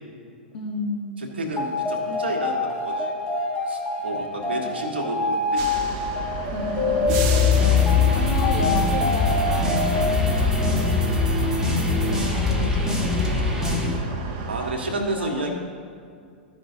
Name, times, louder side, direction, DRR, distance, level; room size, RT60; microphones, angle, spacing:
voice 1, 0.5-1.3 4.1-4.6 6.5-7.2 7.6-11.1 11.4-13.1 13.4-14.3 14.9-15.5, left 3 dB, 55° left, 0 dB, 1.8 m, -33 dB
voice 2, 1.2-3.1 3.7-5.6 14.5-15.5, right 2 dB, 80° right, 1 dB, 1.4 m, -30 dB
sound 1, 1.5-11.3, left 2 dB, 15° left, 1.5 m, -27 dB
sound 2, 5.6-14.7, right 4 dB, 45° right, 0.9 m, -32 dB
sound 3, 7.1-14.0, left 4 dB, 10° right, 1.4 m, -22 dB
13.0 x 5.5 x 3.9 m, 2.3 s
hypercardioid pair, 105°, 6 cm